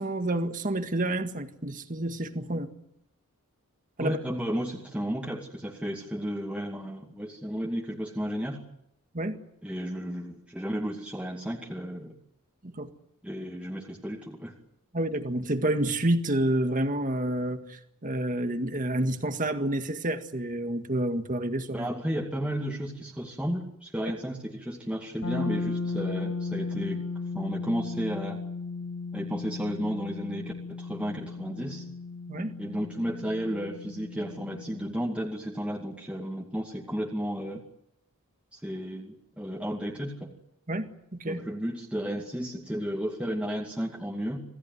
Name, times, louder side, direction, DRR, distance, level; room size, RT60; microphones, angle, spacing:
voice 1, 0.0-2.7 4.0-4.2 9.1-9.4 12.6-12.9 14.9-21.9 32.3-32.5 40.7-40.9 41.2-41.4, right 1 dB, 35° right, 7 dB, 1.8 m, -29 dB
voice 2, 4.0-8.6 9.6-12.1 13.2-14.5 21.7-27.0 27.3-28.4 29.1-31.8 32.6-37.6 38.5-40.3 41.2-44.4, equal, 5° right, -2 dB, 2.4 m, -33 dB
sound 1, 25.2-35.0, left 4 dB, 65° left, 7.3 m, -35 dB
27.0 x 17.5 x 9.5 m, 0.79 s
head